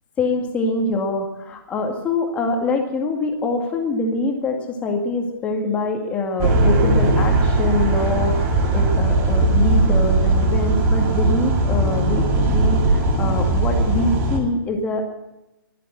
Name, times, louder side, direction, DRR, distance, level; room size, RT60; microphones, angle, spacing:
voice 1, 0.2-15.0, left 3 dB, 10° left, 2 dB, 2.2 m, -24 dB
sound 1, 6.4-14.4, right 2 dB, 20° right, 2.2 m, -18 dB
22.5 x 7.6 x 7.6 m, 0.95 s
hypercardioid pair, 155°, 12 cm